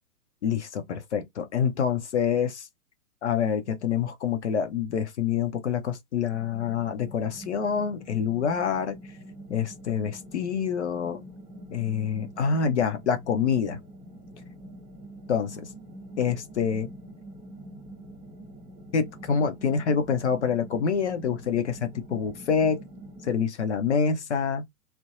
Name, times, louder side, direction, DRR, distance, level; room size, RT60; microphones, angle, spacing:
voice 1, 0.4-2.7 3.2-9.0 9.5-11.2 11.7-13.8 15.3-15.7 16.2-16.9 18.9-22.8 23.2-24.7, left 7 dB, 50° left, 0.5 m, -26 dB
sound 1, 6.3-23.4, right 1 dB, 10° right, 0.9 m, -45 dB
2.6 x 2.1 x 2.4 m
figure-of-eight pair, 120°, 46 cm